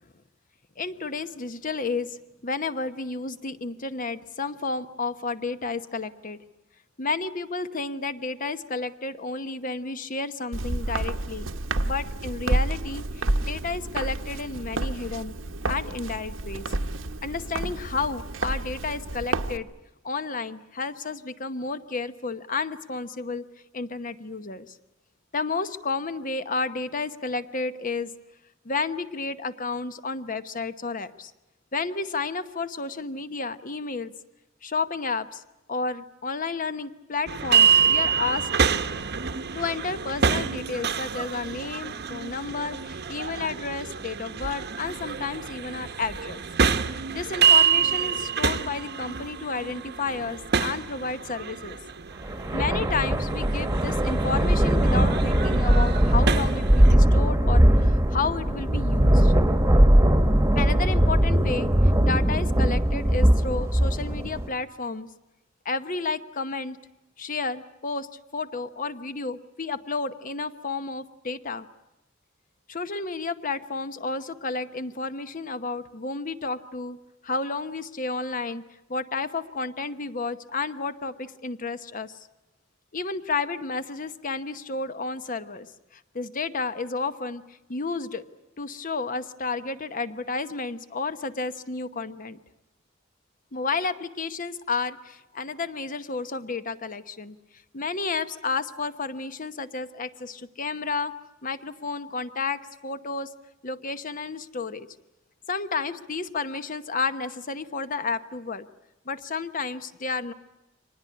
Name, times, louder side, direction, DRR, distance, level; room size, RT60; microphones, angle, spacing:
voice 1, 0.8-6.4 7.0-11.5 11.8-15.3 15.7-16.7 17.2-19.7 20.0-23.4 23.7-24.8 25.3-28.1 28.6-31.3 31.7-34.1 34.6-35.4 35.7-38.5 39.5-46.4 46.9-51.8 52.5-59.3 60.5-65.1 65.6-66.8 67.2-68.1 68.3-71.7 72.7-77.0 77.2-78.6 78.9-82.3 82.9-88.2 88.6-92.4 93.5-97.4 97.7-103.3 103.6-104.9 105.5-108.6 109.0-110.3, left 4 dB, 45° left, 12 dB, 1.0 m, -31 dB
Walk footsteps, 10.5-19.6, right 2 dB, 90° right, 1.1 m, -30 dB
sound 1, 37.3-56.9, right 7 dB, 60° right, 1.0 m, -27 dB
sound 2, 52.2-64.5, equal, 15° right, 1.3 m, -20 dB
25.0 x 19.5 x 10.0 m, 0.97 s
head